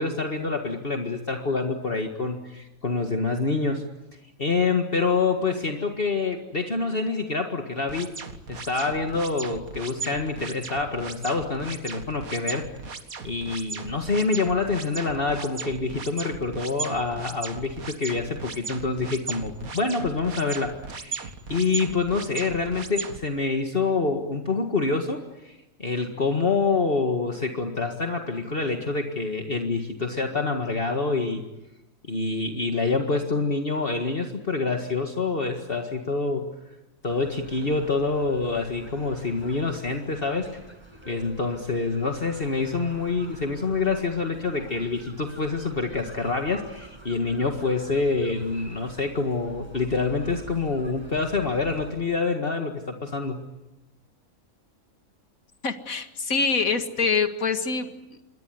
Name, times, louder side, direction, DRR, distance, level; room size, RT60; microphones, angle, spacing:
voice 1, 0.0-3.9 4.4-8.1 8.5-12.6 13.2-31.4 32.1-36.5 37.0-40.5 41.1-53.4, left 4 dB, 40° left, 3 dB, 2.0 m, -26 dB
sound 1, 7.9-23.2, right 5 dB, 85° right, 2.3 m, -37 dB
sound 2, 37.1-51.9, right 1 dB, 20° right, 8.2 m, -45 dB
voice 2, 55.6-57.9, left 5 dB, 80° left, 7 dB, 2.3 m, -25 dB
27.5 x 22.5 x 9.5 m, 0.99 s
omnidirectional pair, 1.4 m